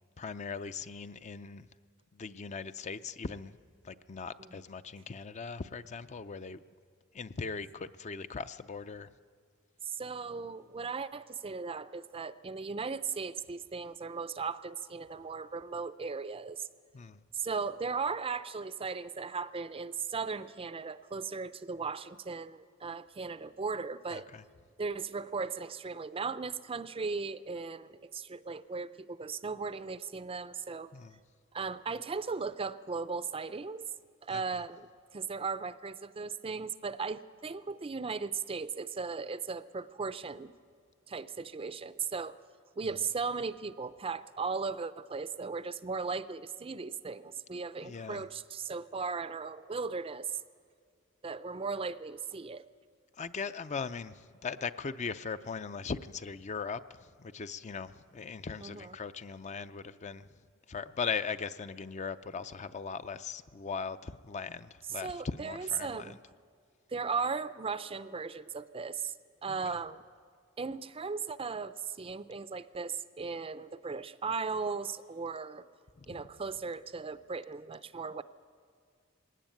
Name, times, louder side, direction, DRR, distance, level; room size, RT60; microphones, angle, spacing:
voice 1, 0.2-1.7 2.1-3.6 3.8-6.6 7.1-9.1 16.9-17.2 24.1-24.4 30.9-31.1 34.3-34.4 47.8-48.2 53.2-60.3 60.7-66.1 76.0-76.2, left 5 dB, 35° left, 12 dB, 0.5 m, -39 dB
voice 2, 9.8-16.7 17.3-24.3 24.8-30.9 31.5-33.9 34.2-34.9 35.1-40.5 41.1-42.4 42.8-50.3 51.2-52.6 58.6-59.0 65.0-66.2 66.9-69.1 69.4-70.0 70.6-75.6 76.1-78.2, right 5 dB, 30° right, 14 dB, 0.5 m, -37 dB
20.0 x 17.5 x 9.1 m, 2.1 s
head